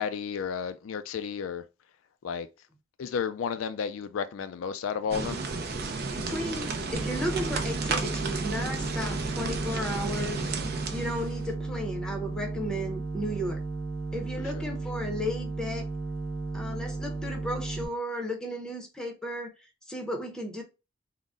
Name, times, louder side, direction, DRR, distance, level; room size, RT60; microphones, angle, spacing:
voice 1, 0.0-1.6 2.2-2.5 3.0-5.4 14.5-14.6, left 6 dB, 75° left, 0.4 m, -32 dB
sound 1, 5.1-11.5, right 4 dB, 50° right, 0.6 m, -33 dB
voice 2, 6.1-10.5 10.9-13.6 14.1-15.9 16.5-19.5 19.9-20.6, equal, 5° left, 0.7 m, -34 dB
sound 2, 6.9-17.9, right 3 dB, 75° right, 1.4 m, -34 dB
3.8 x 2.1 x 3.6 m
head